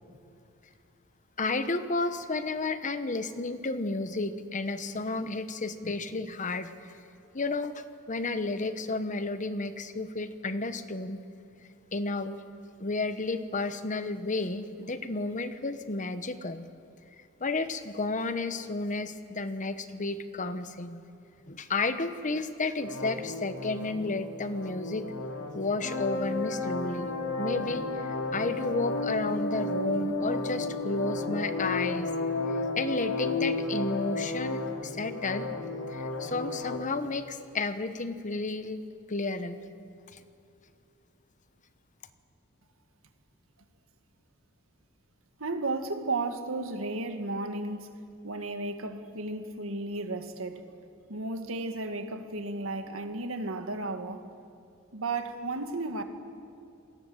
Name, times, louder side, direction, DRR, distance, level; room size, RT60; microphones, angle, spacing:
voice 1, 1.4-6.9 7.3-11.2 11.9-12.4 12.8-16.7 17.4-21.0 21.5-25.1 25.5-27.1 27.4-32.1 32.5-35.5 35.9-38.8 39.1-39.6 40.1-40.2, left 3 dB, 35° left, 11 dB, 1.1 m, -32 dB
sound 1, 22.8-36.8, left 2 dB, 85° left, 3.0 m, -33 dB
voice 2, 45.4-47.9 48.2-50.7 51.1-54.3 54.9-56.0, right 2 dB, 70° right, 7 dB, 2.0 m, -34 dB
28.0 x 20.0 x 7.9 m, 2.7 s
head